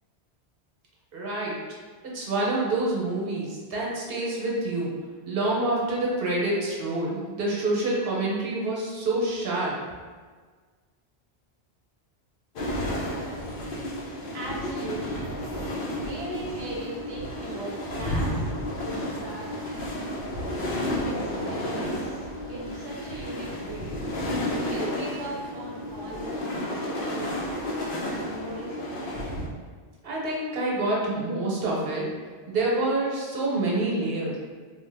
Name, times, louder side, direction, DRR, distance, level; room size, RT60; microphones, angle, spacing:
voice 1, 1.1-1.6 2.1-9.8 30.0-32.1 32.5-34.4, right 2 dB, 65° right, -4 dB, 0.9 m, -27 dB
sound 1, 12.6-29.5, left 1 dB, 65° left, 0.7 m, -32 dB
voice 2, 14.3-15.6 15.9-18.5 18.8-19.9 21.0-24.0 24.5-26.4 26.7-27.4 28.1-28.9, right 1 dB, 30° right, -7 dB, 0.5 m, -38 dB
2.9 x 2.2 x 3.2 m, 1.5 s
omnidirectional pair, 1.1 m